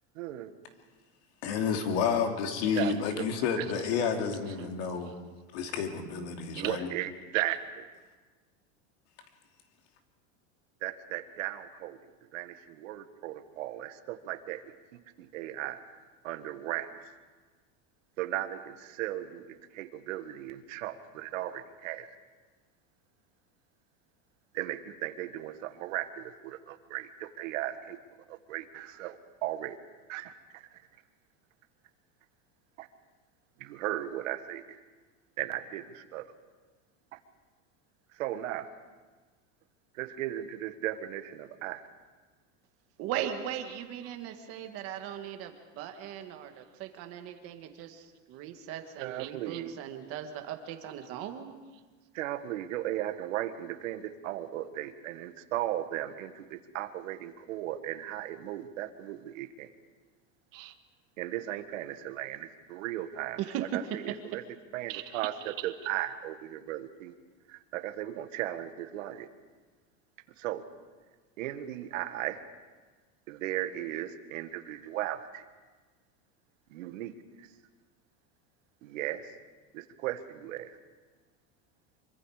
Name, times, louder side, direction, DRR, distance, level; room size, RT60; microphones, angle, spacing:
voice 1, 0.1-0.5 2.7-3.8 5.1-5.2 6.5-7.9 10.8-12.0 12.3-14.6 15.2-15.8 16.2-17.1 18.2-22.1 24.5-28.0 28.3-29.8 30.1-30.8 32.8-32.9 33.6-34.8 35.4-36.2 37.1-37.2 38.1-38.7 39.9-41.9 49.0-49.7 52.1-59.7 60.5-60.7 61.2-64.4 64.7-67.1 67.5-69.3 70.4-70.6 71.4-72.4 73.3-75.4 76.7-77.5 78.8-79.3 79.7-80.8, right 13 dB, 75° right, 9 dB, 1.6 m, -36 dB
voice 2, 1.4-5.1 5.5-6.9, left 6 dB, 55° left, 3 dB, 2.9 m, -30 dB
voice 3, 43.0-51.5 63.4-64.4, right 10 dB, 35° right, 6 dB, 1.7 m, -38 dB
25.5 x 24.0 x 5.0 m, 1.3 s
supercardioid pair, 180°, 39 cm